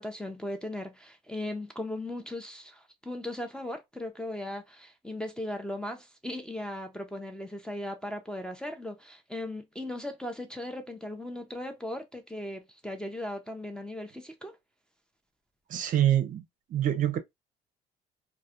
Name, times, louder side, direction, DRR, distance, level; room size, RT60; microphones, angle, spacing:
voice 1, 0.0-14.6, left 1 dB, 5° left, 0.4 m, -38 dB
voice 2, 15.7-16.4 16.7-17.2, right 11 dB, 50° right, 0.5 m, -25 dB
2.3 x 2.1 x 2.7 m
cardioid pair, 110°, 17 cm